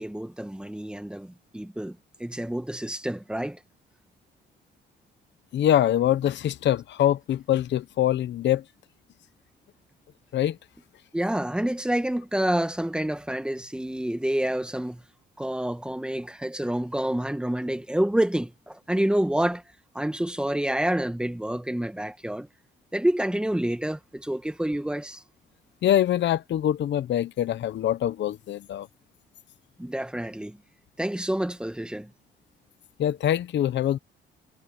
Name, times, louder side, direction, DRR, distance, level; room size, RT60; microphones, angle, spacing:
voice 1, 0.0-3.6 11.1-15.0 15.4-19.6 20.0-22.5 22.9-25.2 29.8-30.6 31.0-32.1, right 1 dB, 5° right, 1.9 m, -28 dB
voice 2, 5.5-8.6 10.3-10.6 25.8-28.9 33.0-34.0, left 11 dB, 65° left, 0.9 m, -24 dB
cardioid pair, 90°, 20 cm